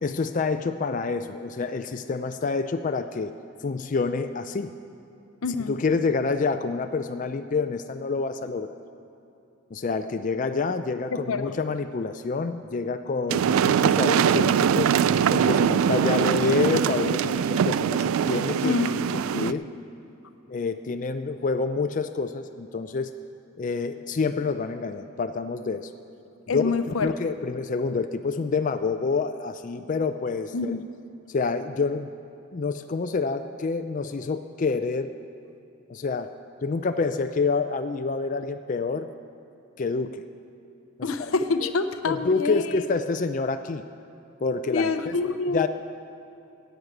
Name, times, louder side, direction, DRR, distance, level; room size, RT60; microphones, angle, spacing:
voice 1, 0.0-3.3 3.6-4.7 5.7-8.7 9.7-14.9 15.3-18.8 19.3-19.7 20.5-23.1 23.6-25.9 26.5-30.8 31.3-32.1 32.5-35.1 35.9-36.3 36.6-39.1 39.8-40.2 41.2-41.3 41.6-41.7 42.1-43.8 44.4-45.1 45.5-45.7, left 4 dB, 40° left, 8 dB, 0.4 m, -27 dB
voice 2, 5.4-5.8 11.3-11.6 18.6-19.0 26.5-27.1 30.5-30.8 41.0-42.8 44.7-45.7, left 3 dB, 85° left, 10 dB, 0.7 m, -26 dB
sound 1, 13.3-19.5, right 8 dB, 80° right, 0.3 m, -22 dB
11.0 x 8.0 x 9.1 m, 2.8 s
head